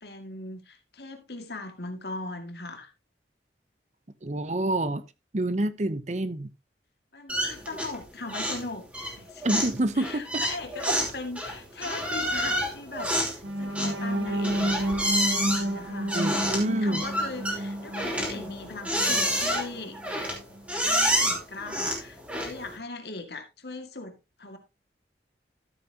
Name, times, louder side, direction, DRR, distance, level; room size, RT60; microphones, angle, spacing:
voice 1, 0.0-2.9 7.1-9.6 9.9-13.3 13.6-14.7 15.5-20.0 20.8-24.6, left 2 dB, 65° left, 2.1 m, -39 dB
voice 2, 4.2-5.0 5.3-6.5 9.4-10.4 10.9-11.0 16.1-17.0, right 1 dB, 40° right, 0.8 m, -27 dB
sound 1, 7.3-8.0 8.3-8.7 8.9-22.7, equal, 10° right, 3.2 m, -29 dB
sound 2, 13.4-19.4 19.8-20.0 20.4-20.6, right 1 dB, 85° right, 2.0 m, -31 dB
13.0 x 8.3 x 2.9 m
head